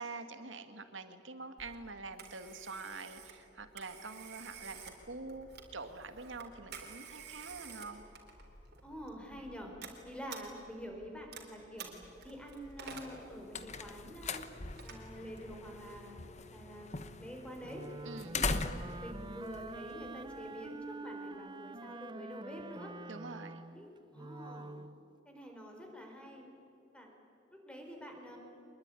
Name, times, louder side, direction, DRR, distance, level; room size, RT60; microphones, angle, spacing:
voice 1, 0.0-8.0 18.0-18.4 23.1-23.6, right 3 dB, 85° right, 9 dB, 1.9 m, -46 dB
Telephone, 1.6-15.8, right 5 dB, 60° right, 3.9 m, -52 dB
voice 2, 8.8-11.9 12.2-14.4 14.8-16.2 16.5-17.8 18.3-18.6 19.0-22.9 23.7-24.8 25.2-26.5 26.9-27.1 27.5-28.4, equal, 5° left, 2 dB, 4.4 m, -47 dB
sound 1, 13.0-20.5, left 4 dB, 40° left, 1.1 m, -41 dB
Wind instrument woodwind instrument, 17.6-25.0, right 2 dB, 25° right, 0.5 m, -46 dB
25.0 x 21.5 x 9.8 m, 2.9 s
head